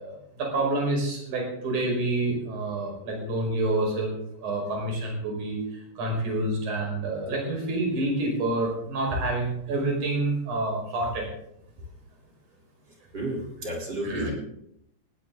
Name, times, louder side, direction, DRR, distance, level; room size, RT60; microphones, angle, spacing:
voice 1, 0.0-4.1 4.4-5.6 6.0-11.3 14.0-14.3, right 2 dB, 45° right, 0 dB, 6.7 m, -28 dB
voice 2, 13.1-14.3, right 1 dB, 25° right, -1 dB, 4.1 m, -32 dB
18.5 x 16.5 x 4.0 m, 0.76 s
omnidirectional pair, 5.1 m